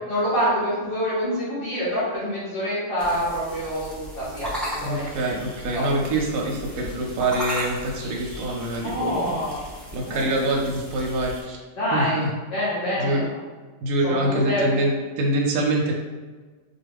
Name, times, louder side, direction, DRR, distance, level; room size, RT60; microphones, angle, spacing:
voice 1, 0.1-5.1 5.7-5.8 8.8-9.6 10.0-10.4 11.8-13.2 14.0-14.7, equal, 45° left, -10 dB, 1.1 m, -26 dB
sound 1, 3.0-11.4, equal, ahead, 0.7 m, -36 dB
voice 2, 4.8-9.4 9.9-11.6 11.9-12.3 13.0-13.2 13.8-15.9, right 1 dB, 85° right, 0 dB, 1.0 m, -25 dB
4.2 x 2.3 x 3.4 m, 1.4 s
omnidirectional pair, 1.4 m